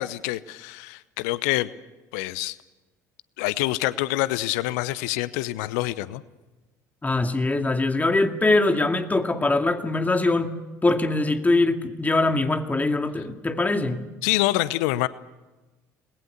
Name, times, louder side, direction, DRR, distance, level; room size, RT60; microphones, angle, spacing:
voice 1, 0.0-1.7 2.1-2.6 3.4-6.2 14.2-15.1, left 17 dB, 65° left, 18 dB, 0.8 m, -26 dB
voice 2, 7.0-10.6 10.8-14.0, left 2 dB, 15° left, 6 dB, 2.3 m, -22 dB
29.0 x 20.5 x 6.8 m, 1.2 s
figure-of-eight pair, 60°, 9 cm